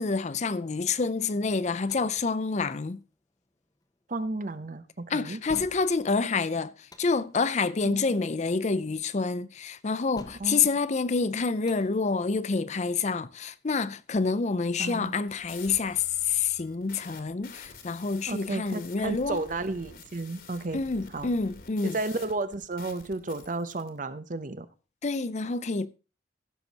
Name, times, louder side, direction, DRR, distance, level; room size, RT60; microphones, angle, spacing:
voice 1, 0.0-3.0 5.1-19.4 20.7-22.0 25.0-25.9, left 4 dB, 40° left, 0.5 m, -28 dB
sound 1, 1.9-14.6, left 1 dB, 20° left, 1.0 m, -53 dB
voice 2, 4.1-5.4 7.8-8.2 10.4-10.6 14.8-15.2 18.3-20.8 21.1-21.3 21.8-24.7, right 2 dB, 45° right, 0.8 m, -33 dB
sound 2, 14.9-23.9, left 4 dB, 55° left, 2.0 m, -49 dB
16.0 x 6.4 x 4.1 m
head